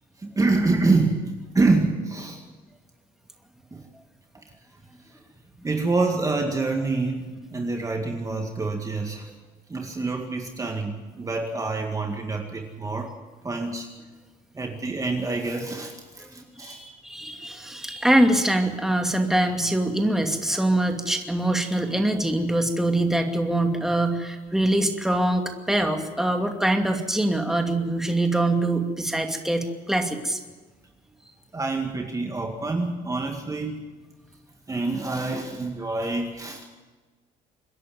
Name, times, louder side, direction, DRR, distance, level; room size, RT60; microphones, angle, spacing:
voice 1, 0.2-2.4 3.7-3.8 5.6-9.3 9.7-13.1 13.4-13.9 14.5-16.8 31.5-33.9 34.7-36.6, right 3 dB, 20° right, 3 dB, 2.1 m, -26 dB
voice 2, 16.6-30.4, right 1 dB, ahead, 4 dB, 2.5 m, -24 dB
26.5 x 11.0 x 9.4 m, 1.3 s
cardioid pair, 110°, 17 cm